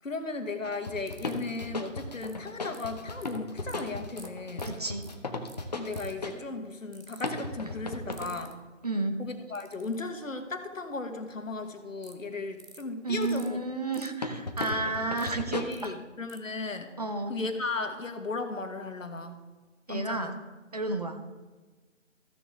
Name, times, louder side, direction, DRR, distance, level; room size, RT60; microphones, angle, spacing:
voice 1, 0.0-4.8 5.7-8.6 9.2-13.6 15.6-16.9 17.3-19.4 19.9-20.4, left 3 dB, 80° left, 7 dB, 1.5 m, -36 dB
sound 1, 0.6-6.4 7.2-8.4 14.2-15.6, left 2 dB, 35° left, 0.8 m, -36 dB
sound 2, 1.1-1.6 2.2-2.3 2.7-3.4 3.7-3.8 4.2-4.3 4.6-4.7 5.0-5.1 5.5-5.6 5.9-6.2 6.9-7.3 8.1-8.5 9.5-9.9 12.0-12.1 12.6-12.8 13.2-13.5 13.9-14.1 14.6-15.3 15.7-15.9 16.3-16.4, right 3 dB, 85° right, 1.4 m, -50 dB
voice 2, 4.6-5.1 8.8-9.2 13.0-15.9 17.0-17.4 19.9-20.4 20.7-21.2, right 2 dB, 30° right, 5 dB, 0.7 m, -31 dB
14.5 x 6.8 x 3.6 m, 1.3 s
figure-of-eight pair, 160°, 39 cm